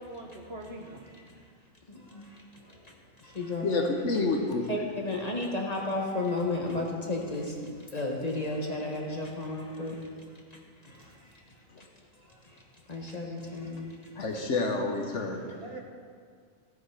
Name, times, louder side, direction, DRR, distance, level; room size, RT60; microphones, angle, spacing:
voice 1, 0.0-1.2 11.2-11.4 12.2-12.7 15.6-15.8, right 1 dB, 45° right, 1 dB, 1.2 m, -44 dB
voice 2, 1.9-4.0 4.7-14.2, left 2 dB, 30° left, 0 dB, 1.2 m, -35 dB
voice 3, 3.6-4.6 11.7-11.8 14.2-15.5, left 3 dB, 55° left, 2 dB, 1.3 m, -29 dB
15.5 x 6.3 x 4.8 m, 2.1 s
omnidirectional pair, 1.5 m